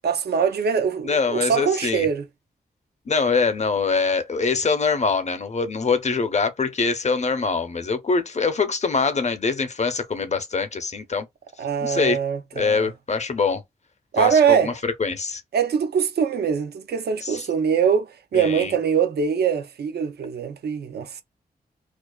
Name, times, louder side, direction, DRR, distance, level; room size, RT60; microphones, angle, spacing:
voice 1, 0.0-2.3 11.6-12.9 14.1-14.7 15.5-21.2, right 7 dB, 75° right, 0.5 m, -23 dB
voice 2, 1.0-2.1 3.1-11.3 11.8-12.2 12.6-13.6 14.2-15.4 17.2-17.4 18.3-18.8, left 4 dB, 45° left, 0.6 m, -24 dB
2.4 x 2.3 x 2.2 m
cardioid pair, 55°, 17 cm